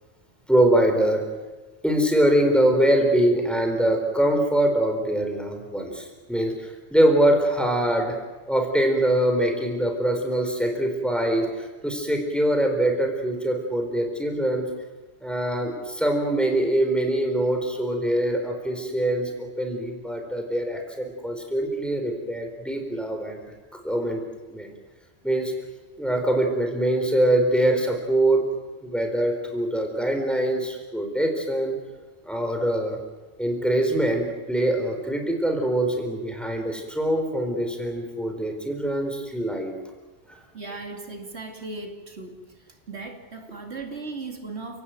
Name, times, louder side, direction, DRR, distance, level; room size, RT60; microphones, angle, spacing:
voice 1, 0.5-1.2 1.8-8.2 8.5-11.5 11.8-14.7 15.2-23.5 23.8-24.2 24.5-24.7 25.2-25.5 26.0-28.4 28.8-31.8 32.3-33.0 33.4-39.7, right 1 dB, ahead, 3 dB, 4.3 m, -23 dB
voice 2, 40.5-42.5 42.9-44.8, right 3 dB, 80° right, 4 dB, 2.8 m, -37 dB
29.5 x 17.5 x 9.3 m, 1.2 s
omnidirectional pair, 1.1 m